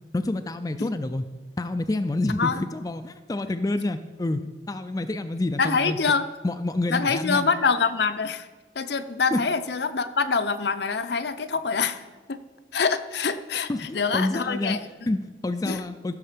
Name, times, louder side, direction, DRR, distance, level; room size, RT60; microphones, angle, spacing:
voice 1, 0.1-1.2 1.6-6.0 6.4-7.5 9.3-9.4 13.7-14.8 15.1-16.1, left 2 dB, 20° left, 8 dB, 0.3 m, -28 dB
voice 2, 2.3-2.6 5.6-6.3 6.9-8.5 8.7-12.4 12.7-14.9 15.6-15.8, left 5 dB, 65° left, 10 dB, 0.6 m, -25 dB
15.0 x 6.5 x 5.1 m, 1.3 s
head